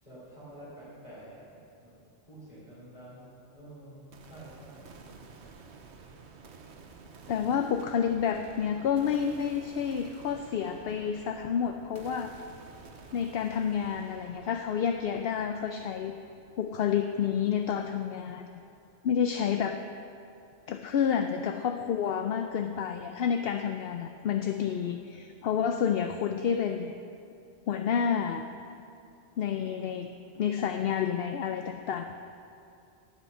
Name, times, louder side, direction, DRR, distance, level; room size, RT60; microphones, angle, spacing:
voice 1, 0.0-2.0 2.3-5.0 7.2-7.4, right 1 dB, 40° left, -11 dB, 3.9 m, -49 dB
sound 1, 4.1-18.1, right 4 dB, 80° right, 1.2 m, -51 dB
voice 2, 7.3-12.3 13.1-16.2 16.6-18.5 19.0-19.8 20.7-26.9 27.7-28.4 29.4-30.1 30.4-32.2, left 7 dB, 65° left, 7 dB, 0.8 m, -29 dB
17.5 x 8.3 x 5.5 m, 2.6 s
omnidirectional pair, 1.1 m